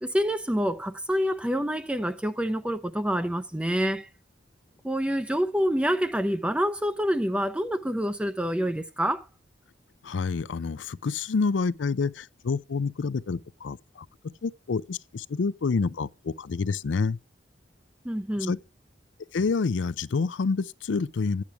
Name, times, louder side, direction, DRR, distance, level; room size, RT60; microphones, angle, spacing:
voice 1, 0.0-4.1 4.8-9.3 18.0-18.6, equal, 5° right, 0.5 m, -27 dB
voice 2, 10.0-14.1 14.4-17.2 18.4-18.6 19.3-21.4, left 4 dB, 80° left, 0.5 m, -28 dB
10.5 x 8.5 x 4.7 m
head